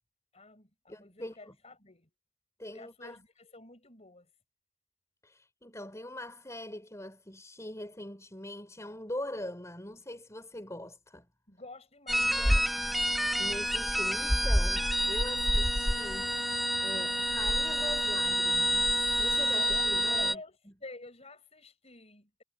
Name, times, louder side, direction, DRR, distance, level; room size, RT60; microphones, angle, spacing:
voice 1, 0.3-2.1 2.6-4.3 11.5-12.9 19.4-22.4, left 2 dB, 30° left, 5.4 m, -50 dB
voice 2, 0.9-1.6 2.6-3.2 5.2-11.3 13.4-16.3 16.8-20.4, left 1 dB, 15° left, 3.9 m, -42 dB
sound 1, 12.1-20.3, equal, ahead, 1.3 m, -28 dB
head